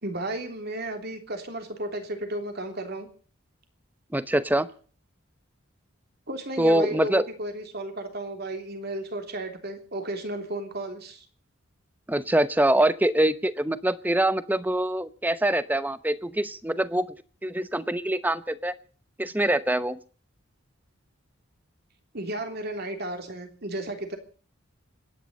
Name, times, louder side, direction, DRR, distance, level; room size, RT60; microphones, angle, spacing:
voice 1, 0.0-3.1 6.3-11.2 22.1-24.2, right 1 dB, 50° right, 6 dB, 3.2 m, -33 dB
voice 2, 4.1-4.7 6.6-7.2 12.1-17.1 17.4-18.7 19.2-20.0, right 1 dB, 10° right, 14 dB, 0.8 m, -24 dB
25.5 x 10.0 x 5.4 m, 0.42 s
head